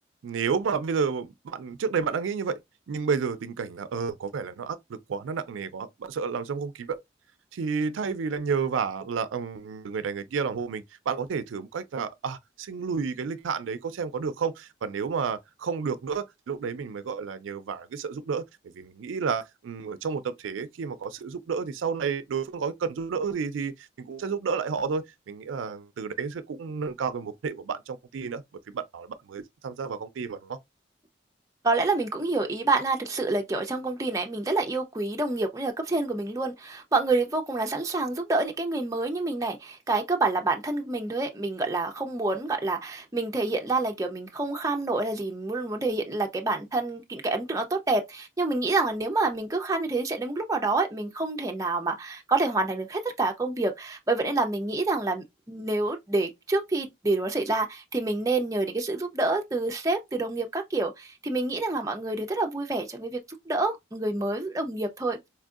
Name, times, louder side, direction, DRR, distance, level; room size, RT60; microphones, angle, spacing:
voice 1, 0.2-2.6 2.9-7.0 7.5-28.4 28.7-30.6, right 5 dB, 85° right, 0.4 m, -31 dB
voice 2, 31.6-63.2 63.5-65.2, right 3 dB, 15° right, 0.5 m, -27 dB
4.3 x 2.6 x 2.3 m
head